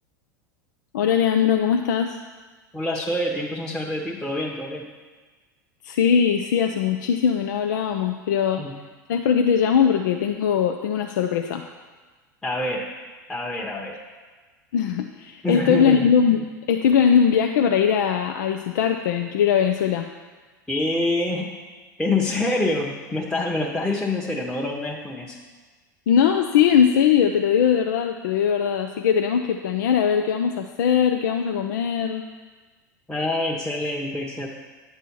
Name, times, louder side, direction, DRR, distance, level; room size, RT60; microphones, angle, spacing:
voice 1, 0.9-2.2 5.8-8.6 9.1-11.6 14.7-20.1 26.1-32.2, left 7 dB, 70° left, 4 dB, 0.5 m, -20 dB
voice 2, 2.7-4.9 8.6-8.7 12.4-12.9 13.3-14.0 15.4-16.1 20.7-21.5 22.0-25.4 33.1-34.5, left 2 dB, 5° left, -2 dB, 1.0 m, -26 dB
10.5 x 6.7 x 4.6 m, 1.3 s
hypercardioid pair, 85°, 10 cm